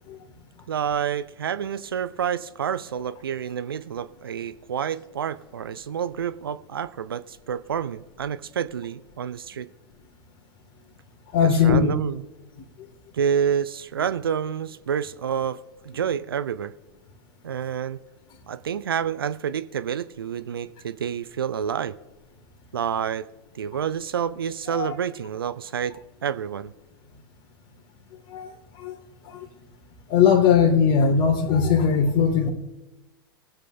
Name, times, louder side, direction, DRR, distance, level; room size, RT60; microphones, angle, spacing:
voice 1, 0.7-9.7 11.6-12.2 13.1-16.7 17.4-18.0 18.5-22.0 22.7-23.3 23.5-26.7, right 8 dB, 75° right, 0.5 m, -28 dB
voice 2, 11.3-11.9 12.8-12.9 24.7-25.0 28.3-29.0 29.3-29.5 30.1-32.5, left 6 dB, 45° left, 2.0 m, -20 dB
22.5 x 7.5 x 2.6 m
figure-of-eight pair, 85°, 12 cm